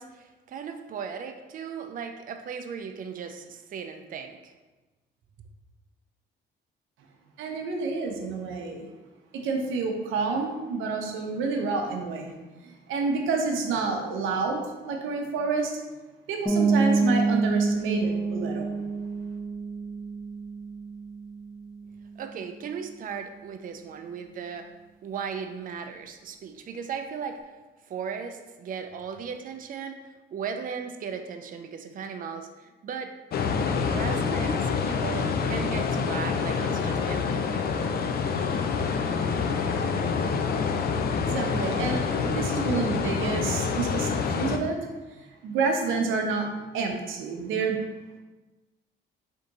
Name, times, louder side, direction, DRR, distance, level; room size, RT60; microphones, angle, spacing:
voice 1, 0.0-4.5 5.4-5.5 22.2-24.7 25.0-27.5 27.9-33.2 33.8-37.3 37.7-37.8, right 6 dB, 45° right, 6 dB, 0.4 m, -37 dB
voice 2, 7.4-8.9 9.3-12.3 12.6-15.8 16.3-18.7 41.3-44.8 45.2-46.5 46.7-47.8, right 4 dB, 85° right, 2 dB, 0.6 m, -29 dB
sound 1, 16.5-22.1, right 4 dB, ahead, 1.0 m, -27 dB
sound 2, 33.3-44.6, left 5 dB, 50° left, 0.4 m, -27 dB
3.5 x 2.7 x 3.9 m, 1.2 s
cardioid pair, 90°, 20 cm